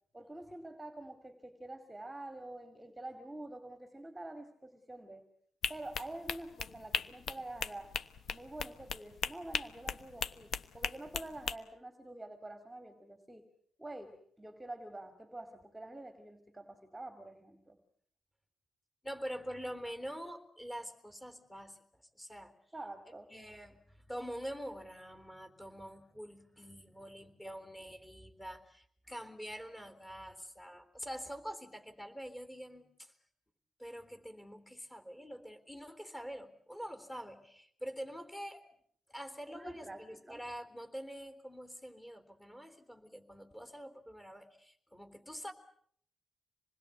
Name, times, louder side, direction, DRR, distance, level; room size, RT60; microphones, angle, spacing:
voice 1, 0.1-5.2 5.7-7.9 8.3-13.5 13.8-17.8 22.7-23.3 39.5-40.4, right 1 dB, 10° right, 8 dB, 2.4 m, -47 dB
sound 1, 5.6-11.6, left 7 dB, 55° left, 1.1 m, -38 dB
voice 2, 19.0-21.8 22.1-22.5 23.3-33.1 33.8-38.6 39.1-45.5, equal, 10° left, 9 dB, 3.6 m, -45 dB
27.0 x 20.5 x 8.3 m, 0.65 s
cardioid pair, 135°, 0 cm